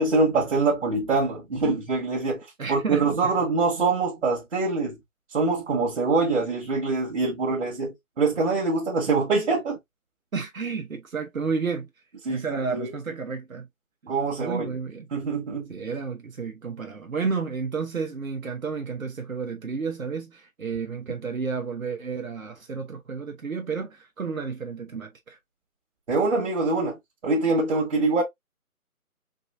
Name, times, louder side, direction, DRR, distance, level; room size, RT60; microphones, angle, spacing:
voice 1, 0.0-5.0 5.3-9.8 12.2-12.9 14.1-14.7 15.1-15.7 26.1-27.0 27.2-28.2, right 3 dB, 50° right, 1.7 m, -24 dB
voice 2, 2.6-3.4 10.3-11.9 12.3-13.7 14.0-15.1 15.7-25.4, right 5 dB, 65° right, 1.2 m, -31 dB
5.3 x 2.7 x 2.5 m
figure-of-eight pair, 150°, 44 cm